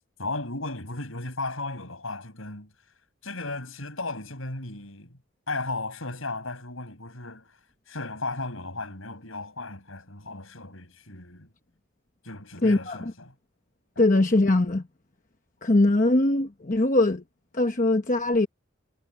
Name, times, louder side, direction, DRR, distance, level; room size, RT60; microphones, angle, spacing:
voice 1, 0.2-2.7 3.2-5.2 5.5-7.6 7.9-11.5 12.2-13.3, left 2 dB, 80° left, 7.0 m, -35 dB
voice 2, 12.6-13.0 14.0-14.8 15.6-17.2 17.5-18.5, left 2 dB, 40° left, 1.0 m, -21 dB
head